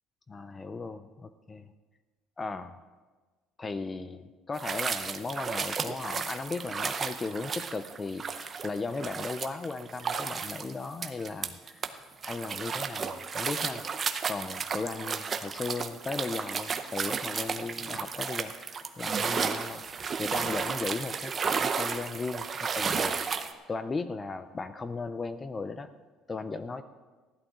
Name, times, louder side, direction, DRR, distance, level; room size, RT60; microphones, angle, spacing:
voice 1, 0.3-1.7 2.4-2.8 3.6-11.9 12.2-13.8 14.3-19.8 20.2-23.2 23.7-25.9 26.3-26.8, left 3 dB, 20° left, 11 dB, 0.4 m, -36 dB
sound 1, 4.6-11.9 12.2-23.5, right 6 dB, 30° right, 0.7 m, -33 dB
15.5 x 11.5 x 3.7 m, 1.3 s
cardioid pair, 145°, 0 cm